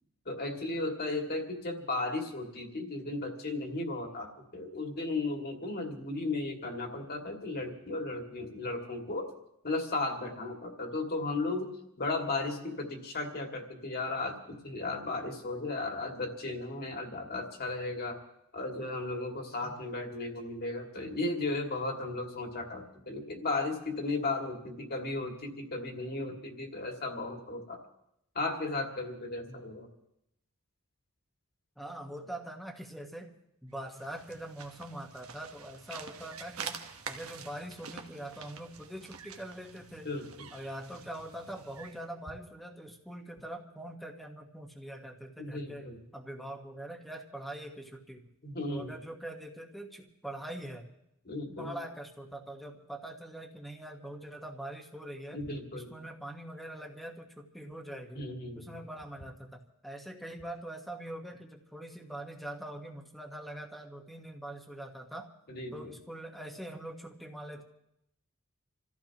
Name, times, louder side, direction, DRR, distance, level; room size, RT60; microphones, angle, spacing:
voice 1, 0.3-9.3 9.6-11.7 12.0-18.2 18.5-27.8 28.3-29.9 40.0-40.5 45.4-46.0 48.4-49.0 51.3-51.8 55.3-55.9 58.1-58.8 65.5-65.9, left 2 dB, 45° left, 2 dB, 2.3 m, -35 dB
voice 2, 31.8-33.3 33.6-36.8 37.1-40.1 40.5-48.2 48.7-50.9 51.5-55.4 55.7-58.2 58.6-65.3 65.7-67.6, right 1 dB, ahead, 3 dB, 1.4 m, -43 dB
sound 1, 33.8-42.1, right 6 dB, 75° right, 1.2 m, -46 dB
28.0 x 14.5 x 3.0 m, 0.80 s
head